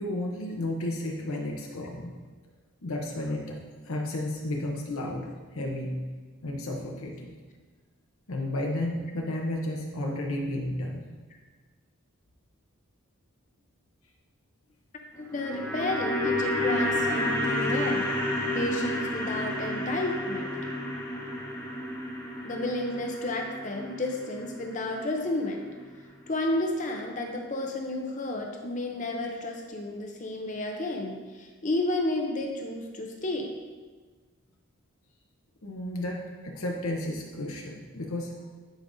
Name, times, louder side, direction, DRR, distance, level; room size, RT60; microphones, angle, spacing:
voice 1, 0.0-2.1 2.8-3.6 3.8-6.0 6.4-7.3 8.3-11.1 35.6-38.3, left 1 dB, 75° left, 0 dB, 0.8 m, -32 dB
voice 2, 15.2-18.1 18.5-20.5 22.4-25.7 26.3-33.5, left 2 dB, 35° left, 2 dB, 0.6 m, -31 dB
sound 1, 15.2-25.4 25.7-25.8, left 1 dB, 10° left, 0.8 m, -31 dB
10.5 x 5.2 x 2.6 m, 1.4 s
head